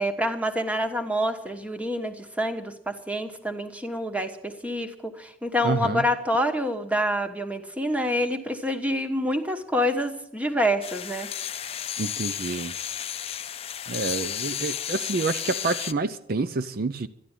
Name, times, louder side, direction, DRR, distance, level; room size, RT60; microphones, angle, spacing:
voice 1, 0.0-11.3, equal, 10° right, 1.2 m, -27 dB
voice 2, 5.6-6.0 12.0-12.7 13.9-17.1, right 3 dB, 55° right, 0.5 m, -28 dB
sound 1, 10.8-15.9, left 10 dB, 35° left, 0.5 m, -33 dB
13.0 x 11.0 x 8.9 m
head